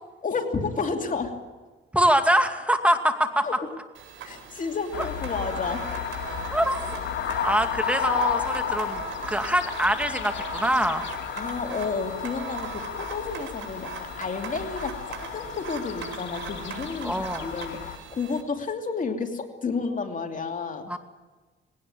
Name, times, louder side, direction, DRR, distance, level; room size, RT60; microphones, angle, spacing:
voice 1, 0.2-1.4 3.4-3.5 4.2-5.9 6.3-6.4 7.2-7.5 11.4-20.9, left 4 dB, 40° left, 5 dB, 2.8 m, -31 dB
voice 2, 1.9-3.5 5.0-5.1 6.5-6.8 7.4-11.1 17.0-17.5 20.9-21.0, right 1 dB, 5° right, 7 dB, 2.4 m, -24 dB
sound 1, 3.9-18.4, right 8 dB, 80° right, 4.4 m, -40 dB
sound 2, 4.9-18.0, left 8 dB, 65° left, 2.6 m, -33 dB
20.0 x 18.0 x 9.1 m, 1.3 s
cardioid pair, 90°, 20 cm